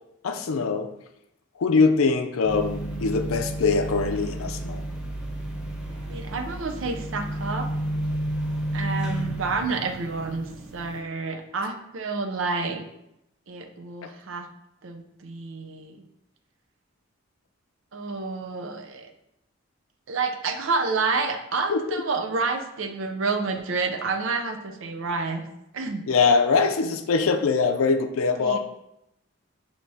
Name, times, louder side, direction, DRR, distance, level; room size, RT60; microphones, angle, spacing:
voice 1, 0.2-0.9 1.6-4.8 14.0-14.1 21.7-21.8 26.1-28.6, left 4 dB, 80° left, 7 dB, 0.5 m, -22 dB
sound 1, 2.4-11.0, right 1 dB, 5° right, 0.7 m, -31 dB
voice 2, 6.1-7.7 8.7-12.9 13.5-14.5 14.8-16.0 17.9-19.1 20.1-25.5 25.7-26.0 28.4-28.6, right 4 dB, 70° right, 6 dB, 0.5 m, -29 dB
6.4 x 2.9 x 2.7 m, 0.82 s
head